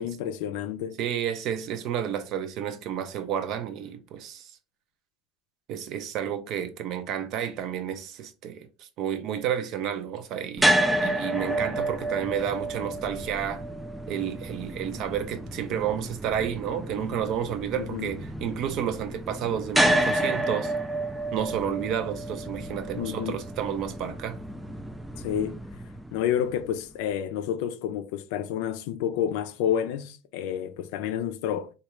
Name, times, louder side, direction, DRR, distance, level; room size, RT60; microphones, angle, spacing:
voice 1, 0.0-1.0 17.7-18.2 23.0-23.4 25.2-25.6 26.1-31.7, left 9 dB, 70° left, 0.4 m, -29 dB
voice 2, 1.0-4.5 5.7-13.6 14.1-20.7 21.3-24.4, right 9 dB, 55° right, 0.5 m, -31 dB
sound 1, 10.6-26.7, right 1 dB, 5° right, 0.3 m, -30 dB
3.2 x 2.3 x 3.0 m
supercardioid pair, 105°, 0 cm